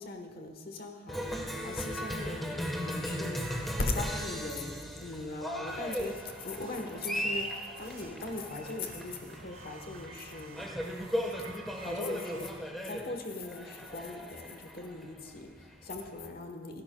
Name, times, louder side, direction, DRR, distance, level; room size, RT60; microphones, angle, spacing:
voice 1, 0.0-10.7 11.8-16.8, left 2 dB, 50° left, 4 dB, 1.2 m, -40 dB
Cheering, 1.1-16.3, equal, ahead, 1.3 m, -37 dB
sound 1, 5.6-12.5, right 3 dB, 85° right, 2.9 m, -50 dB
29.0 x 11.0 x 2.3 m, 1.4 s
head